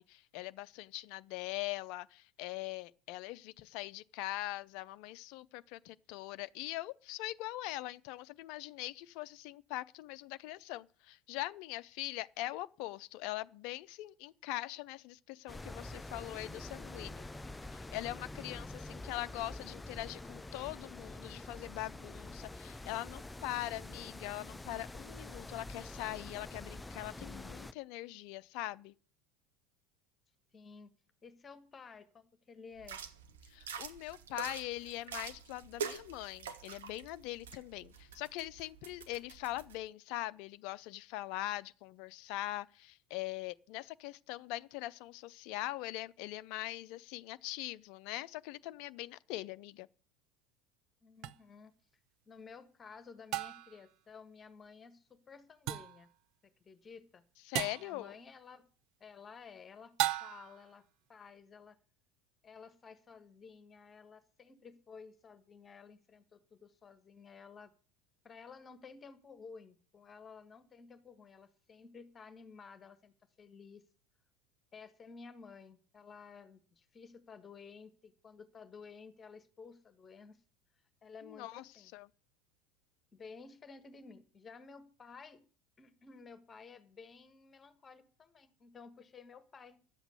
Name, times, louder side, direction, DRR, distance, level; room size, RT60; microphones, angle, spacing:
voice 1, 0.0-17.3 17.7-28.9 33.5-49.9 57.5-58.2 81.2-82.1, left 17 dB, 55° left, 0.5 m, -42 dB
sound 1, 15.5-27.7, left 2 dB, 10° left, 0.5 m, -46 dB
voice 2, 30.5-30.9 31.2-33.0 51.0-51.7 52.3-56.1 56.4-57.2 57.8-58.7 59.0-60.8 61.1-61.8 62.4-67.7 68.2-73.8 74.7-80.4 81.0-81.9 83.1-85.4 85.8-89.8, left 5 dB, 25° left, 1.4 m, -54 dB
sound 2, 32.8-39.7, right 6 dB, 70° right, 1.2 m, -46 dB
sound 3, 51.2-51.3 53.3-53.8 55.7-56.0 57.5-57.9 60.0-60.6, right 15 dB, 50° right, 0.7 m, -35 dB
11.5 x 8.0 x 8.3 m
figure-of-eight pair, 75°, 0 cm